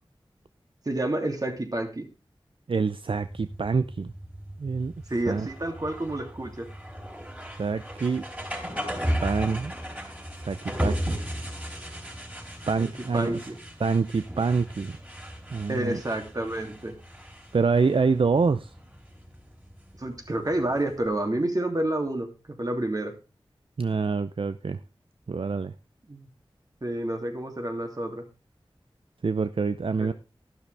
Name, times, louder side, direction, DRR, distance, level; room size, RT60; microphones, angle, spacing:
voice 1, 0.8-2.1 5.1-6.7 12.8-13.6 15.7-16.9 20.0-23.1 26.1-26.3 26.8-28.3 30.0-30.1, right 1 dB, 40° right, 4 dB, 2.7 m, -29 dB
voice 2, 2.7-4.1 4.6-4.9 5.3-5.5 7.6-8.2 9.2-9.7 10.3-11.2 12.7-13.4 13.8-14.9 15.5-16.0 17.5-18.7 23.8-24.8 25.3-25.7 29.2-30.1, right 4 dB, 65° right, 12 dB, 0.5 m, -26 dB
sound 1, 3.1-21.0, equal, 15° right, 4.0 m, -36 dB
12.5 x 12.0 x 3.4 m, 0.30 s
wide cardioid pair, 65°, 9 cm